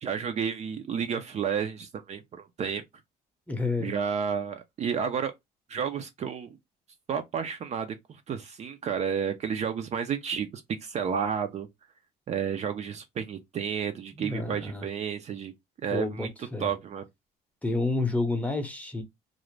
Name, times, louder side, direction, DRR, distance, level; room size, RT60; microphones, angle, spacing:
voice 1, 0.0-2.8 3.8-5.3 5.7-6.6 7.1-8.0 8.3-11.7 12.3-15.5 15.8-16.3 16.6-17.0, right 7 dB, 40° right, 0.4 m, -31 dB
voice 2, 3.5-3.9 14.2-14.8 15.9-16.7 17.6-19.0, left 2 dB, 10° left, 0.7 m, -29 dB
2.5 x 2.0 x 3.1 m
cardioid pair, 110°, 17 cm